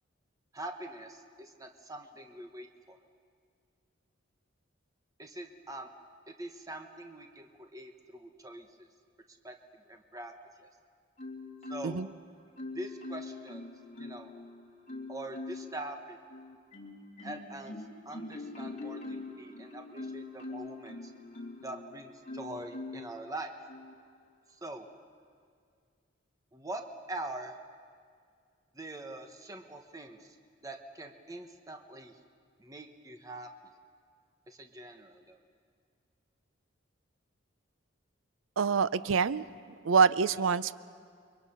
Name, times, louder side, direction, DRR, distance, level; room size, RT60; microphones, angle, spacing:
voice 1, 0.5-3.0 5.2-5.9 6.3-8.9 9.3-9.6 9.9-10.7 11.7-12.0 12.7-13.7 14.0-14.3 15.1-16.2 17.2-17.8 18.0-21.1 21.6-23.5 24.5-24.9 26.5-26.8 27.1-27.6 28.7-30.4 30.6-32.1 32.6-33.5 34.5-35.4 40.4-40.5, right 1 dB, 20° right, 4 dB, 1.0 m, -43 dB
Marimba xylophone, 11.2-12.2 12.6-14.4 14.9-15.8 16.3-21.7 22.3-23.1 23.7-23.9, left 3 dB, 40° left, 2.8 m, -43 dB
voice 2, 38.6-39.4 39.8-40.7, right 5 dB, 85° right, 16 dB, 0.5 m, -25 dB
30.0 x 23.0 x 5.7 m, 2.2 s
head